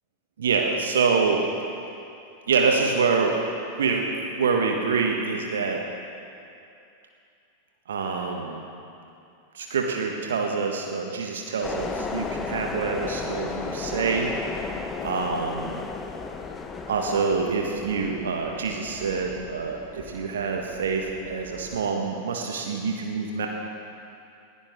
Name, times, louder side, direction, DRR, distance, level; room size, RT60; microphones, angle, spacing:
voice 1, 0.4-1.4 2.5-3.4 3.8-5.8 7.9-8.6 9.5-14.3 15.0-15.8 16.9-23.5, right 5 dB, 65° right, 2 dB, 1.6 m, -26 dB
sound 1, 11.6-21.8, left 4 dB, 20° left, 1.2 m, -35 dB
20.0 x 16.0 x 3.8 m, 2.6 s
figure-of-eight pair, 90°, 0 cm